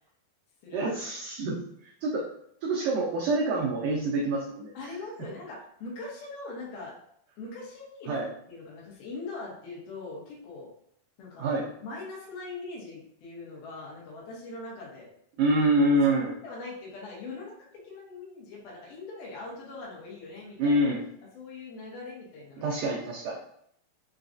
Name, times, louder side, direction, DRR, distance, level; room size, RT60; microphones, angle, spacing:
voice 1, 0.7-1.6 1.8-2.2 2.6-4.7 8.1-8.3 11.4-11.7 15.4-16.3 20.6-21.1 22.6-23.4, right 1 dB, 85° right, -2 dB, 1.8 m, -26 dB
voice 2, 4.7-7.0 7.4-10.7 11.2-11.6 11.8-15.1 16.4-20.8 21.3-22.8, left 3 dB, 70° left, -3 dB, 2.4 m, -41 dB
6.0 x 2.3 x 2.5 m, 0.71 s
omnidirectional pair, 4.3 m